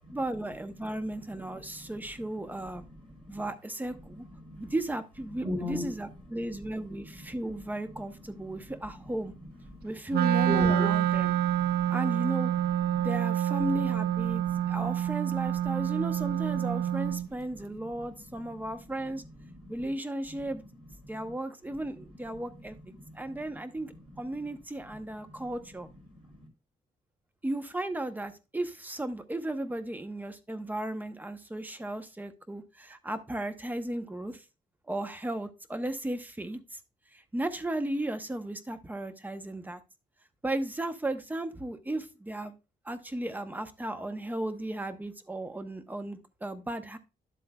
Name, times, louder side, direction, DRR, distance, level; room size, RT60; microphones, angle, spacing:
voice 1, 0.1-2.8 3.3-4.2 4.6-9.3 9.8-11.3 11.9-12.5 13.0-19.2 19.7-20.6 21.1-25.9 27.4-34.4 34.9-36.8 37.1-39.8 40.4-42.5 42.8-47.0, right 1 dB, 10° right, 0.7 m, -35 dB
voice 2, 1.2-2.0 2.5-3.4 4.2-4.7 5.4-5.9 6.3-6.6 7.0-7.4 7.8-8.0 8.3-9.0 9.7-9.9 10.4-11.9 12.9-13.1 13.8-14.9 15.7-16.0 16.6-18.7 19.1-19.8 20.3-20.4 21.1-21.3 21.6-21.7 22.5-23.2 23.5-23.6 23.8-24.2 25.3-25.5 26.1-26.4, left 1 dB, 35° right, 3.1 m, -41 dB
Wind instrument woodwind instrument, 10.1-17.3, right 11 dB, 75° right, 0.4 m, -27 dB
11.5 x 7.6 x 2.2 m
cardioid pair, 125°, 17 cm